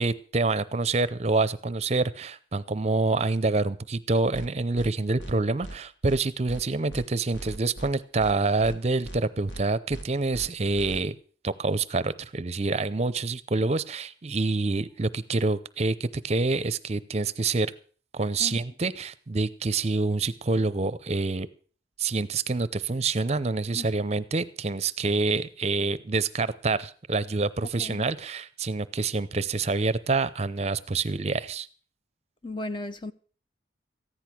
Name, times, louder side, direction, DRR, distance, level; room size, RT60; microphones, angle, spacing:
voice 1, 0.0-11.2 11.4-17.7 18.1-21.5 22.0-31.7, right 3 dB, 35° right, 0.6 m, -27 dB
sound 1, 4.3-4.5 4.8-4.9 5.2-5.3 5.6-5.8 6.0-6.2 6.5-6.6 6.9-7.0 7.3-7.9 8.2-8.3 8.6-8.8 9.0-9.2 9.5-9.6 9.9-10.0 10.3-10.5 10.8-11.0, right 1 dB, 70° left, 2.0 m, -39 dB
voice 2, 32.4-33.1, left 2 dB, 25° left, 0.6 m, -35 dB
14.5 x 10.5 x 6.0 m
head